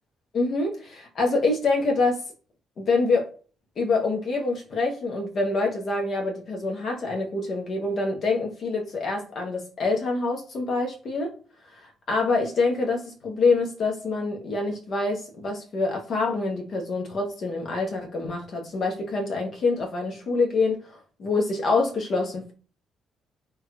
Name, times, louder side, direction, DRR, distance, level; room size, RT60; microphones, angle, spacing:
voice 1, 0.3-2.2 2.8-3.3 3.8-11.4 11.8-22.5, left 3 dB, 50° left, 1.1 m, -26 dB
3.4 x 3.0 x 2.3 m
figure-of-eight pair, 45°, 0 cm